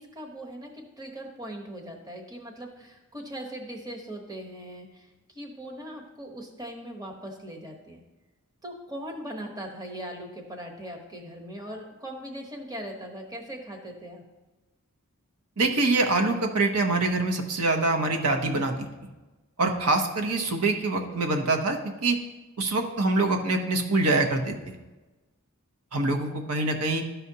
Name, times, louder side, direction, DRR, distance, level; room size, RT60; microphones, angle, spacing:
voice 1, 0.0-8.0 8.6-14.2, right 1 dB, 15° right, 1 dB, 1.0 m, -40 dB
voice 2, 15.6-18.9 19.6-22.2 22.6-24.5 25.9-27.1, right 2 dB, 80° right, 4 dB, 0.8 m, -25 dB
12.0 x 5.6 x 2.8 m, 1.2 s
head